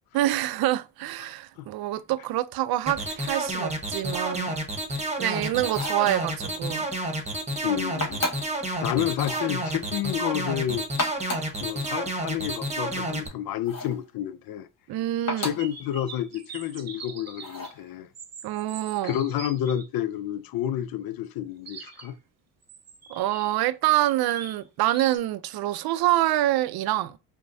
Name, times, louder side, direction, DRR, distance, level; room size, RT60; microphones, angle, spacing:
voice 1, 0.1-4.6 5.2-6.9 14.9-15.5 18.4-19.2 23.1-27.2, right 15 dB, 55° right, 0.5 m, -26 dB
sound 1, 2.9-13.3, right 1 dB, 15° right, 1.1 m, -30 dB
sound 2, 5.6-6.1 8.0-8.6 9.2-9.5 10.8-11.6 13.7-14.0 15.3-15.7 17.4-17.8, left 2 dB, 35° left, 1.5 m, -32 dB
voice 2, 7.6-8.2 8.8-10.9 11.6-14.7 15.4-18.1 19.0-22.2, left 11 dB, 55° left, 0.6 m, -30 dB
sound 3, 15.6-17.7 18.1-19.9 21.7-22.1 22.6-23.6 24.0-25.2, right 6 dB, 35° right, 0.9 m, -43 dB
4.7 x 2.2 x 2.7 m
supercardioid pair, 75°, 45 cm